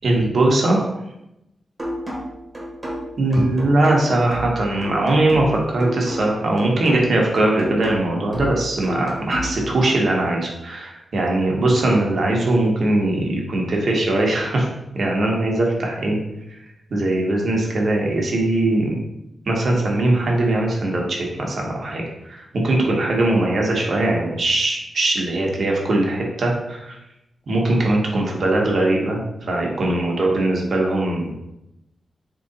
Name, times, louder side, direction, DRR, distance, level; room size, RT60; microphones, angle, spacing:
voice 1, 0.0-1.0 3.2-14.7 14.9-16.2 16.5-16.6 16.9-18.9 19.5-27.0 27.5-31.4, right 2 dB, 55° right, -1 dB, 1.0 m, -20 dB
sound 1, 1.8-9.8, equal, 10° right, 1.4 m, -32 dB
3.9 x 3.1 x 4.0 m, 0.87 s
wide cardioid pair, 110°, 0 cm